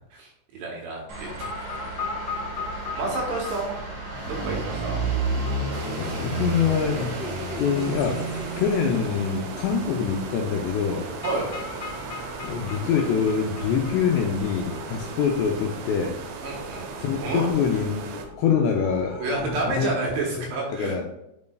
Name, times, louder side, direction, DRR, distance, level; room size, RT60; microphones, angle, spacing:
voice 1, 0.1-1.5 2.3-2.4 2.9-3.8 4.3-5.0 11.2-11.5 16.4-17.5 19.2-21.0, right 3 dB, 70° right, -2 dB, 3.1 m, -30 dB
sound 1, 1.1-18.0, right 3 dB, 45° right, 2.4 m, -34 dB
sound 2, 1.3-19.7, left 3 dB, 60° left, 1.8 m, -39 dB
sound 3, 5.7-18.3, right 6 dB, 85° right, 3.4 m, -39 dB
voice 2, 6.0-7.2 7.6-8.2 8.6-11.1 12.4-16.2 17.0-19.9 20.4-20.5 20.7-21.0, left 7 dB, 80° left, 1 dB, 2.6 m, -25 dB
9.2 x 5.3 x 2.3 m, 0.85 s
omnidirectional pair, 5.6 m